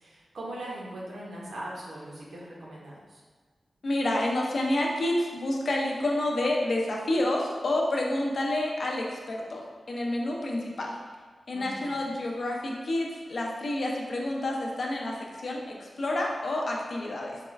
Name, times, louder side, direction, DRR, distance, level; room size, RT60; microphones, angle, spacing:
voice 1, 0.0-3.2 11.5-12.0, right 1 dB, 90° right, -5 dB, 0.8 m, -40 dB
voice 2, 3.8-10.9 11.5-17.4, left 1 dB, 50° left, -1 dB, 0.5 m, -29 dB
4.2 x 2.3 x 3.1 m, 1.5 s
wide cardioid pair, 180°, 0 cm